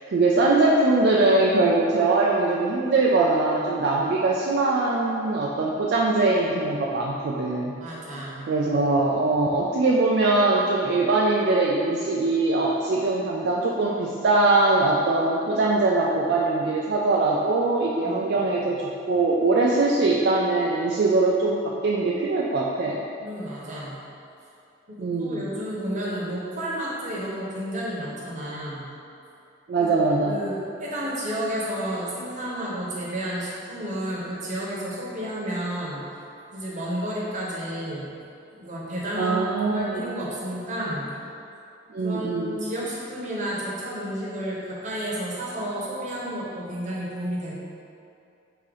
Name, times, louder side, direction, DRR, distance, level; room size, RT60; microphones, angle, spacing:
voice 1, 0.1-7.8 8.5-18.8 19.1-23.0 25.0-25.5 29.7-30.4 39.2-40.1 41.9-42.6, right 2 dB, 60° right, -3 dB, 0.4 m, -22 dB
voice 2, 7.8-8.5 18.0-18.2 23.2-24.0 24.9-28.9 29.8-29.9 30.2-36.0 36.5-38.1 38.5-41.1 42.0-47.6, equal, 40° right, -6 dB, 0.9 m, -31 dB
3.8 x 2.8 x 4.8 m, 2.6 s
head